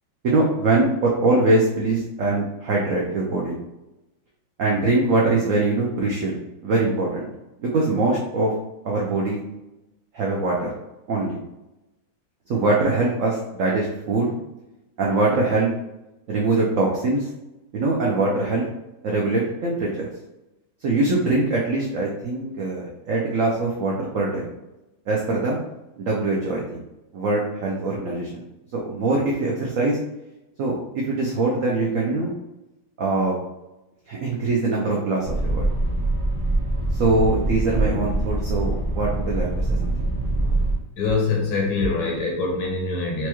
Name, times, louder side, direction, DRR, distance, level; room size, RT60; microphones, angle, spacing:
voice 1, 0.2-3.6 4.6-6.4 6.6-7.3 7.6-8.5 8.8-9.4 10.1-10.7 11.1-11.4 12.5-14.3 15.0-15.7 16.3-17.3 17.7-18.6 19.0-20.1 20.8-24.5 25.1-25.6 26.0-26.8 27.1-28.4 28.7-30.0 30.6-32.3 33.0-33.4 34.1-35.6 37.0-39.9, right 2 dB, 70° right, -3 dB, 0.8 m, -22 dB
sound 1, 35.2-40.7, right 2 dB, 20° right, 0.6 m, -24 dB
voice 2, 41.0-43.3, left 3 dB, 70° left, -1 dB, 1.5 m, -24 dB
4.6 x 2.2 x 3.0 m, 0.97 s
omnidirectional pair, 2.0 m